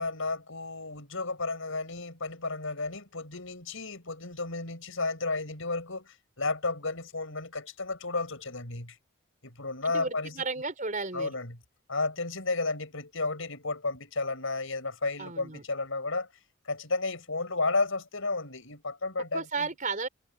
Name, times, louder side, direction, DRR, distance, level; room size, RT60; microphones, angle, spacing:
voice 1, 0.0-9.0 9.4-10.3 11.1-11.6 11.9-16.3 16.6-19.7, left 3 dB, 65° left, 5.3 m, -32 dB
voice 2, 9.8-11.3 15.2-15.6 19.3-20.1, right 4 dB, 35° right, 4.5 m, -33 dB
head